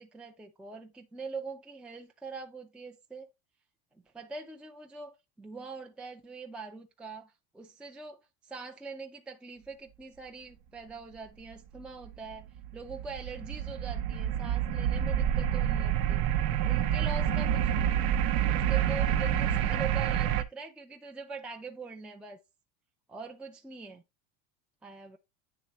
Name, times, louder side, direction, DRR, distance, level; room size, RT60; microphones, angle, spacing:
voice 1, 0.0-3.3 4.1-12.5 12.7-16.3 16.6-17.9 18.5-22.4 23.1-24.0 24.8-25.2, right 4 dB, 5° right, 0.4 m, -43 dB
sound 1, 12.0-20.4, right 10 dB, 75° right, 0.7 m, -28 dB
9.6 x 3.3 x 2.9 m
supercardioid pair, 135°, 31 cm